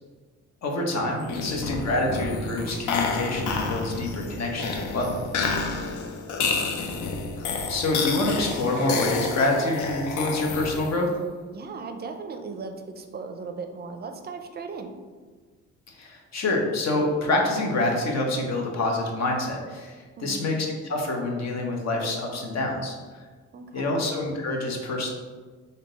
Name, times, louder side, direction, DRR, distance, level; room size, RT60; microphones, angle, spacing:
voice 1, 0.6-5.5 7.7-11.1 15.9-23.0 23.7-25.1, left 2 dB, 60° left, 1 dB, 0.9 m, -27 dB
sound 1, 1.2-11.1, left 4 dB, 75° left, 0.6 m, -30 dB
voice 2, 1.2-1.7 6.4-6.8 11.5-15.0 20.2-20.5 23.5-24.0, right 4 dB, 35° right, 6 dB, 0.5 m, -38 dB
3.6 x 2.7 x 3.9 m, 1.5 s
cardioid pair, 90°, 30 cm